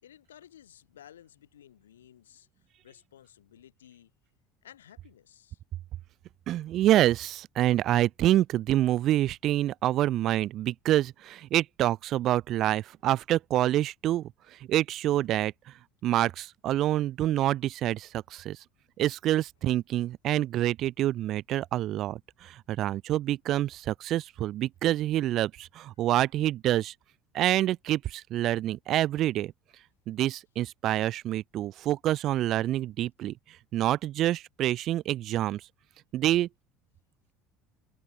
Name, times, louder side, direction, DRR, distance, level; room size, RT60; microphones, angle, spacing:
voice 1, 0.0-2.5 2.8-4.1 4.6-5.6, left 10 dB, 70° left, 5.1 m, -54 dB
voice 2, 6.5-14.3 14.7-15.5 16.0-18.6 19.0-26.9 27.3-29.5 30.1-33.3 33.7-35.6 36.1-36.5, right 13 dB, 45° right, 0.6 m, -27 dB
figure-of-eight pair, 65°, 0 cm